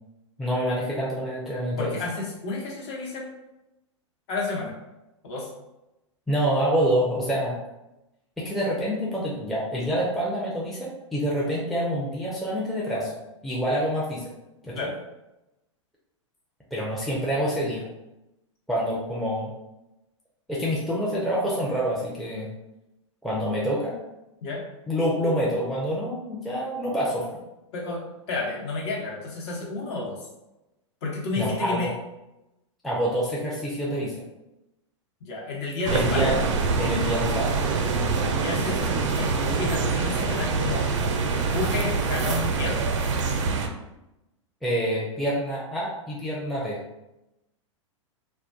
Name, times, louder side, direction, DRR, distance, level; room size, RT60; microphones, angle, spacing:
voice 1, 0.4-2.0 6.3-7.6 8.4-13.1 13.4-14.3 14.6-14.9 16.7-17.9 18.7-19.5 20.5-22.5 23.2-23.9 24.9-27.3 31.4-31.9 32.8-34.2 35.9-36.3 36.8-37.5 44.6-46.8, equal, ahead, -6 dB, 0.4 m, -27 dB
voice 2, 1.8-3.2 4.3-4.7 5.2-5.5 14.7-14.9 24.4-24.6 27.7-28.0 28.3-30.3 31.0-31.9 35.2-36.4 38.1-40.9 41.3-42.8, left 3 dB, 60° left, -3 dB, 0.9 m, -31 dB
sound 1, 35.8-43.7, right 4 dB, 70° right, 0.4 m, -25 dB
2.2 x 2.1 x 2.6 m, 0.94 s
hypercardioid pair, 110°, 16 cm